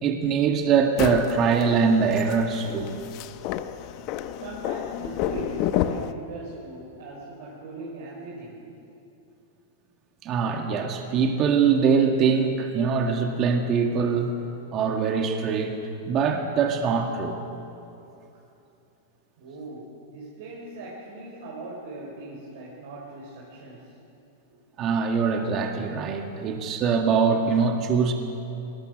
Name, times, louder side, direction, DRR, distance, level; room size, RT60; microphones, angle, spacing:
voice 1, 0.0-2.9 10.2-14.3 14.7-15.8 16.0-17.3 24.8-28.1, right 5 dB, 35° right, 3 dB, 1.8 m, -23 dB
sound 1, 1.0-6.1, left 11 dB, 45° left, 0.9 m, -31 dB
voice 2, 4.4-8.9 19.4-23.9, right 2 dB, 70° right, -4 dB, 4.7 m, -39 dB
21.5 x 19.0 x 6.5 m, 2.8 s
hypercardioid pair, 125°, 0 cm